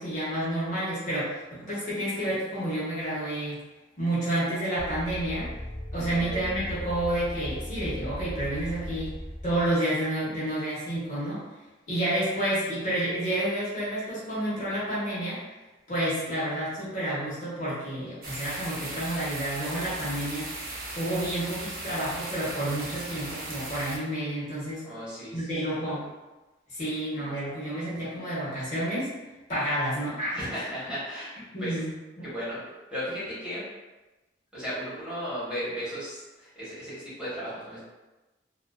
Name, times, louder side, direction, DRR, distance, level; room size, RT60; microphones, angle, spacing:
voice 1, 0.0-3.6 4.0-5.5 5.9-9.1 9.4-11.4 11.9-15.4 15.9-20.5 21.0-24.8 25.3-26.1 26.7-29.1 29.5-30.4 31.5-31.9 32.2-32.3, right 1 dB, 40° left, -9 dB, 0.9 m, -30 dB
sound 1, 4.8-9.8, equal, 25° left, 0.4 m, -37 dB
voice 2, 5.9-6.5 24.8-25.5 25.8-25.9 30.3-31.3 31.6-31.8 32.2-32.6 32.9-33.6 34.5-37.8, equal, 5° right, -11 dB, 0.9 m, -35 dB
sound 2, 18.2-24.0, right 2 dB, 50° right, 0.5 m, -37 dB
2.4 x 2.4 x 2.2 m, 1.1 s
head